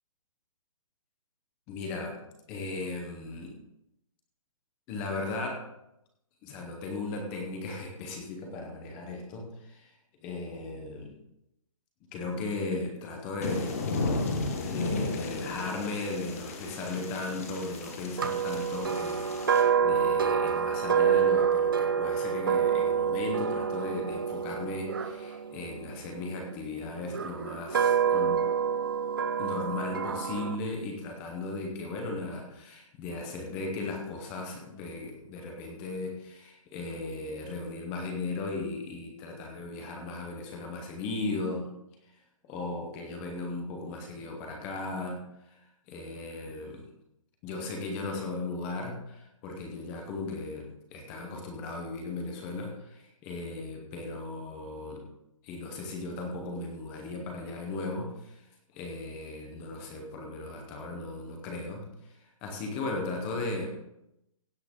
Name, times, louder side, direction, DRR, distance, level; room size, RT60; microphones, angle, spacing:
voice 1, 1.7-2.2 2.5-3.5 4.9-5.7 6.4-9.9 10.2-11.1 12.1-13.7 14.6-28.5 29.4-41.7 42.4-45.6 45.9-46.8 47.4-55.0 55.4-58.5 58.7-61.8 62.2-63.7, left 3 dB, 10° left, 2 dB, 0.7 m, -37 dB
sound 1, 13.4-19.6, left 3 dB, 25° left, 1.3 m, -34 dB
sound 2, 18.2-26.3 27.1-30.6, right 7 dB, 40° right, 0.6 m, -27 dB
16.0 x 8.3 x 3.6 m, 0.84 s
hypercardioid pair, 180°, 18 cm